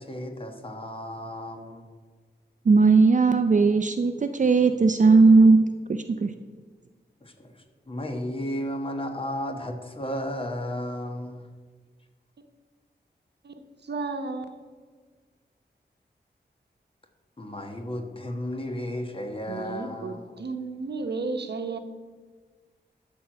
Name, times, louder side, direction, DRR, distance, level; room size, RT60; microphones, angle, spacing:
voice 1, 0.0-1.8 7.2-11.5 17.4-20.4, equal, 30° left, 4 dB, 1.3 m, -34 dB
voice 2, 2.7-6.3, right 4 dB, 45° right, 7 dB, 0.5 m, -18 dB
voice 3, 13.8-14.6 19.5-21.8, right 3 dB, 75° right, 7 dB, 1.0 m, -33 dB
12.0 x 4.6 x 7.5 m, 1.5 s
wide cardioid pair, 110°, 18 cm